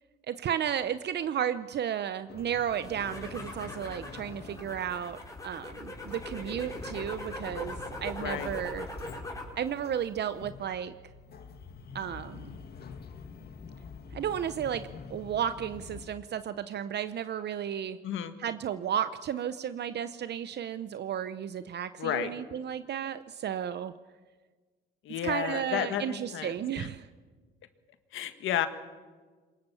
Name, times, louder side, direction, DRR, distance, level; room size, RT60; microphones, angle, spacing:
voice 1, 0.3-8.9 9.6-10.9 11.9-12.5 14.1-18.0 18.4-23.9 25.2-27.1, right 9 dB, 60° right, 12 dB, 0.7 m, -33 dB
sound 1, 2.3-16.1, left 5 dB, 55° left, 1.9 m, -47 dB
sound 2, 2.8-9.6 9.9-10.5, left 1 dB, 15° left, 4.8 m, -41 dB
voice 2, 8.2-8.5 18.0-18.3 22.0-22.3 25.0-26.9 28.1-28.7, left 10 dB, 80° left, 9 dB, 1.7 m, -32 dB
23.0 x 20.5 x 7.1 m, 1.4 s
cardioid pair, 90°, 20 cm